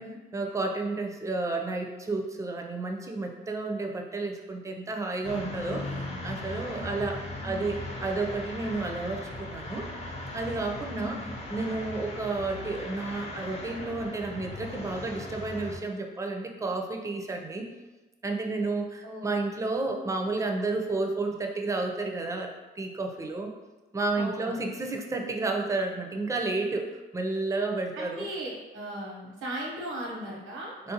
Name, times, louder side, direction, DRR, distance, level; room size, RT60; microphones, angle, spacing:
voice 1, 0.3-7.2 7.4-9.9 10.3-11.2 11.5-17.7 18.2-22.5 22.8-23.5 23.9-28.3 30.8-30.9, right 3 dB, 15° right, 3 dB, 0.4 m, -31 dB
sound 1, 5.2-15.8, left 1 dB, 30° left, 0.5 m, -38 dB
voice 2, 6.7-7.1 7.4-7.8 11.0-11.3 19.0-19.5 24.1-24.7 28.0-30.8, right 1 dB, 90° right, -3 dB, 0.9 m, -38 dB
3.4 x 2.5 x 2.8 m, 1.2 s
cardioid pair, 90°, 20 cm